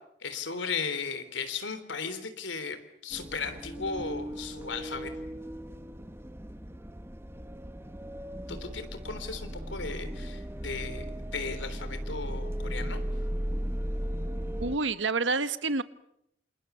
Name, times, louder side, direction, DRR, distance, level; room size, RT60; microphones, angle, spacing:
voice 1, 0.2-2.8 3.0-5.1 8.5-11.1 11.3-13.0, left 4 dB, 85° left, 10 dB, 3.6 m, -36 dB
sound 1, 3.1-14.8, equal, 15° right, 1.1 m, -36 dB
voice 2, 14.6-15.8, right 3 dB, 85° right, 13 dB, 1.4 m, -28 dB
28.5 x 28.0 x 7.0 m, 0.77 s
head